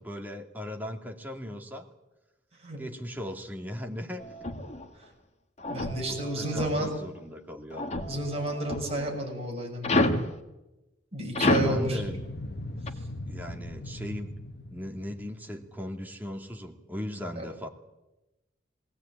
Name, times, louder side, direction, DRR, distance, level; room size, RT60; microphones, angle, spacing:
voice 1, 0.0-1.9 2.8-4.2 6.1-7.8 11.6-12.2 13.3-14.3 14.7-17.7, left 1 dB, 10° right, 2 dB, 2.4 m, -38 dB
sound 1, 4.2-4.9 5.6-7.0 7.7-9.1 9.8-10.3 11.3-11.8 12.9-13.0, left 2 dB, 35° left, 1.7 m, -29 dB
voice 2, 5.6-6.9 8.1-10.1 11.1-12.0 17.4-17.5, right 1 dB, 35° right, 1 dB, 6.6 m, -31 dB
sound 2, 11.6-16.3, left 1 dB, 60° left, 1.1 m, -39 dB
20.5 x 18.0 x 8.9 m, 1.0 s
head